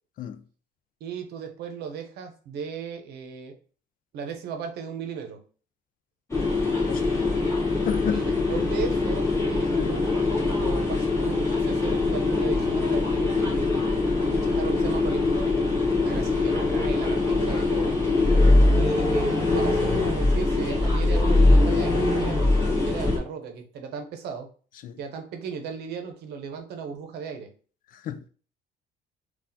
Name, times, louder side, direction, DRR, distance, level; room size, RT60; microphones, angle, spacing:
voice 1, 1.0-3.6 4.1-5.4 8.1-13.7 14.3-15.7 16.0-18.0 18.8-24.5 25.0-27.5, right 6 dB, 75° right, 0.7 m, -36 dB
sound 1, 6.3-23.2, left 2 dB, 15° left, 1.5 m, -22 dB
voice 2, 6.9-7.4 7.7-8.3 9.7-9.9 13.7-13.9 18.0-18.3 22.4-22.6 24.8-25.0 27.9-28.3, left 9 dB, 55° left, 0.4 m, -33 dB
4.0 x 2.4 x 2.7 m
cardioid pair, 110°, 17 cm